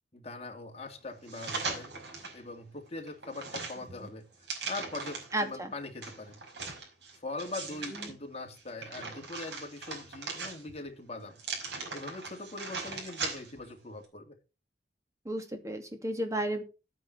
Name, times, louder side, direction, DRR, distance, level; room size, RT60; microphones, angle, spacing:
voice 1, 0.1-1.9 2.3-4.2 4.7-6.4 7.1-11.4 11.9-14.4, left 2 dB, 35° left, 3 dB, 2.5 m, -41 dB
sound 1, 1.3-2.4 2.9-5.4 6.0-8.1 8.6-10.9 11.4-13.7 14.0-14.1, right 4 dB, 80° right, 5.4 m, -39 dB
voice 2, 5.3-5.7 15.2-16.6, right 1 dB, 20° right, 6 dB, 2.4 m, -33 dB
11.0 x 9.3 x 4.5 m, 0.31 s
head